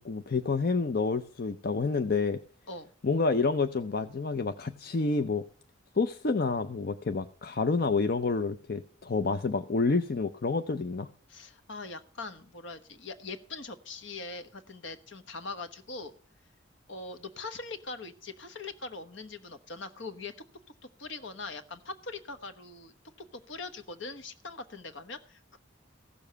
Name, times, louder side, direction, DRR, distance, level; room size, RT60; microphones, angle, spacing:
voice 1, 0.0-2.4 3.0-5.4 6.0-11.1, left 4 dB, 45° left, 9 dB, 0.5 m, -28 dB
voice 2, 11.3-16.1 16.9-20.3 21.0-22.9 23.3-25.6, left 3 dB, 65° left, 10 dB, 1.1 m, -42 dB
15.5 x 7.0 x 6.8 m, 0.43 s
head